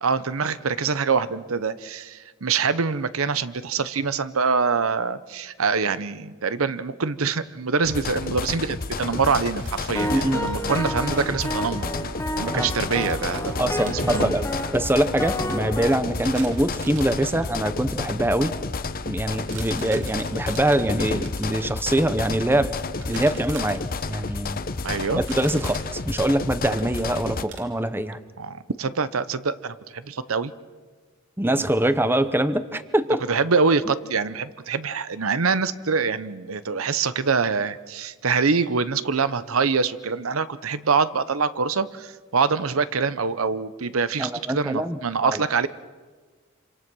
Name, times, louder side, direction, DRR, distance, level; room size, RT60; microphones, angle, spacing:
voice 1, 0.0-11.9 12.4-14.3 24.8-25.2 28.4-30.5 33.3-45.7, right 5 dB, 80° right, 14 dB, 0.8 m, -25 dB
sound 1, 7.8-27.4, left 3 dB, 45° left, 0.8 m, -31 dB
sound 2, 8.6-12.1 12.4-12.5 12.8-14.2 14.8-15.4 16.1-17.6 18.0-18.3 19.3-21.7 22.2-24.5 24.8-27.7, right 5 dB, 60° right, 3.0 m, -45 dB
sound 3, 9.9-16.0, equal, 15° left, 1.6 m, -30 dB
voice 2, 10.1-10.4 12.5-12.7 13.6-18.5 19.0-22.7 23.1-24.6 25.2-28.2 31.4-33.2 44.2-45.4, right 1 dB, 10° right, 12 dB, 0.8 m, -24 dB
26.5 x 26.5 x 6.2 m, 1.4 s
head